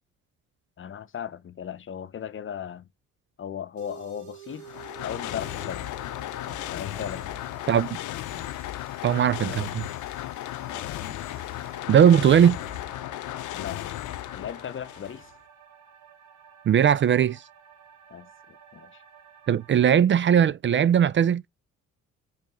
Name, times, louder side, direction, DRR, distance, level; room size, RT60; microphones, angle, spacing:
voice 1, 0.8-2.9 3.4-4.7 5.0-5.9 6.7-7.4 9.5-9.6 13.5-15.3 18.1-19.0, left 8 dB, 40° left, 0.7 m, -37 dB
sound 1, 3.8-19.8, right 9 dB, 70° right, 1.8 m, -51 dB
sound 2, 4.5-15.3, left 15 dB, 80° left, 0.6 m, -35 dB
sound 3, 6.5-9.5 10.7-14.0, equal, 10° right, 2.3 m, -52 dB
voice 2, 7.7-8.0 9.0-9.8 11.9-12.6 16.7-17.4 19.5-21.4, right 9 dB, 40° right, 0.4 m, -19 dB
5.3 x 5.0 x 3.6 m
cardioid pair, 90°, 30 cm